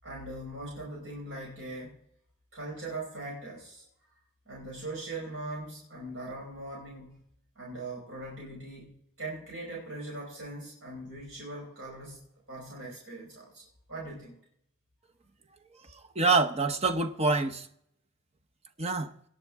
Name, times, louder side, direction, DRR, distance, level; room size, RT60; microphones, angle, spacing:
voice 1, 0.0-2.0 2.5-3.8 4.5-7.2 7.5-14.4, right 2 dB, 65° right, 4.8 m, -41 dB
voice 2, 15.9-17.7 18.8-19.1, right 3 dB, 30° right, 0.8 m, -26 dB
18.0 x 10.0 x 3.6 m
head